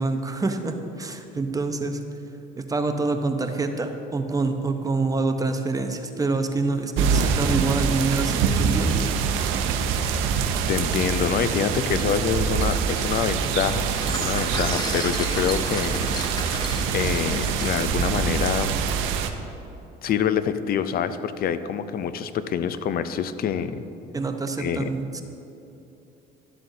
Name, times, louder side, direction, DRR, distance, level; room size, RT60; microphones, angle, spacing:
voice 1, 0.0-2.0 2.6-9.1 24.1-25.2, right 3 dB, 15° right, 6 dB, 0.6 m, -26 dB
sound 1, 7.0-19.3, right 6 dB, 80° right, 0.6 m, -25 dB
voice 2, 10.7-16.1 16.9-18.8 20.0-23.8 24.6-24.9, left 8 dB, 50° left, 13 dB, 0.5 m, -26 dB
sound 2, 13.4-18.1, left 2 dB, 20° left, 0.8 m, -34 dB
12.0 x 7.6 x 2.7 m, 2.9 s
cardioid pair, 95°, 20 cm